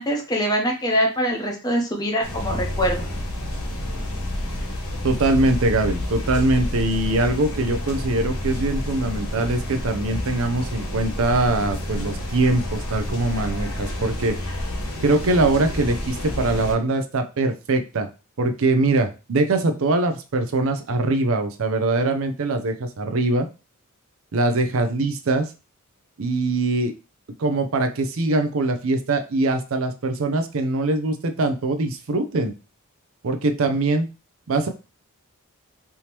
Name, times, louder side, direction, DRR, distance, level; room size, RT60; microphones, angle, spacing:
voice 1, 0.0-3.1, equal, 15° left, 1 dB, 0.7 m, -23 dB
sound 1, 2.2-16.7, left 1 dB, 75° left, 1.4 m, -29 dB
voice 2, 5.0-14.4 15.0-18.1 18.4-23.5 24.3-25.5 26.2-26.9 27.4-32.5 33.2-34.1 34.5-34.7, right 2 dB, 65° right, 6 dB, 0.5 m, -22 dB
3.4 x 2.8 x 2.9 m, 0.31 s
head